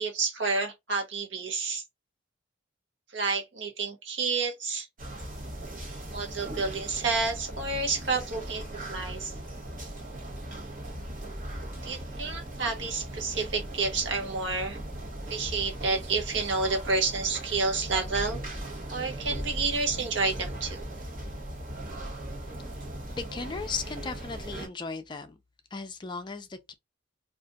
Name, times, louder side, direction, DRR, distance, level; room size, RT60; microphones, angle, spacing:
voice 1, 0.0-1.8 3.1-4.9 6.1-8.6 8.9-9.3 11.8-14.8 15.3-18.4 18.9-20.8, right 4 dB, 65° right, 1.0 m, -29 dB
sound 1, 5.0-24.7, right 1 dB, 45° right, 1.3 m, -38 dB
voice 2, 23.2-25.4 25.7-26.7, left 4 dB, 25° left, 0.4 m, -36 dB
2.5 x 2.4 x 3.9 m
head